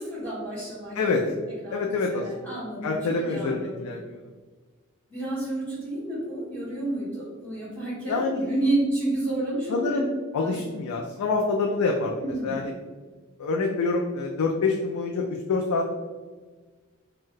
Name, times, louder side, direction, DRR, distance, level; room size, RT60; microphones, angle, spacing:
voice 1, 0.0-1.3 1.6-3.9 5.1-10.0 10.4-10.5 10.9-11.0 12.2-12.7, right 1 dB, 5° left, -14 dB, 1.4 m, -30 dB
voice 2, 1.7-2.2 2.8-4.2 8.1-8.5 9.7-10.1 10.3-12.1 12.4-12.7 13.4-15.9, left 3 dB, 90° left, 0 dB, 0.3 m, -26 dB
2.6 x 2.2 x 3.7 m, 1.4 s
head